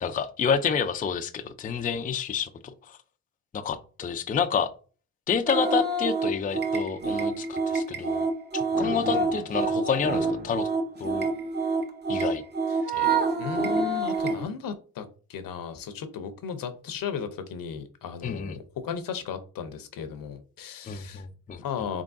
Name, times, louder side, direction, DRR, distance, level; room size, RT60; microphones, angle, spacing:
voice 1, 0.0-3.0 3.5-4.7 5.3-8.2 8.5-10.7 11.0-11.3 12.1-12.4 12.9-13.1 18.2-18.6 20.9-21.6, left 6 dB, 25° left, 0.4 m, -29 dB
sound 1, 5.5-14.4, right 3 dB, 25° right, 0.8 m, -27 dB
voice 2, 9.0-9.5 12.7-13.1 13.4-21.3 21.6-22.0, left 7 dB, 65° left, 0.7 m, -36 dB
3.7 x 3.5 x 2.5 m
supercardioid pair, 60°, 36 cm